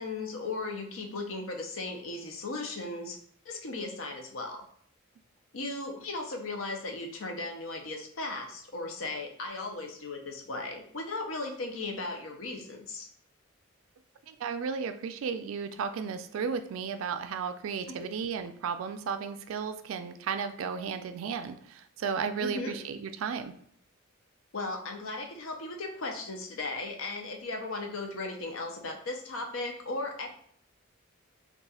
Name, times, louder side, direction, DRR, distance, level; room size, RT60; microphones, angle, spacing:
voice 1, 0.0-3.2 3.4-4.6 5.5-13.1 17.9-18.1 22.4-22.7 24.5-30.3, left 2 dB, 75° left, 2 dB, 0.6 m, -36 dB
voice 2, 14.3-23.5, right 6 dB, 75° right, 10 dB, 0.3 m, -34 dB
4.1 x 2.4 x 2.4 m, 0.62 s
head